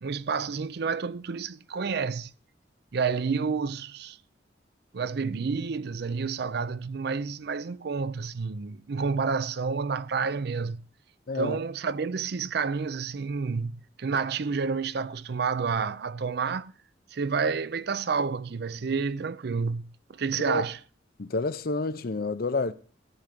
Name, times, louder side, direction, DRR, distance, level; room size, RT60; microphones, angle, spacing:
voice 1, 0.0-2.3 2.9-4.2 4.9-10.8 11.3-16.7 17.1-20.8, right 5 dB, 60° right, 0.5 m, -29 dB
voice 2, 11.3-11.6 20.5-20.6 21.2-22.7, left 3 dB, 55° left, 0.6 m, -29 dB
14.0 x 5.1 x 5.8 m
head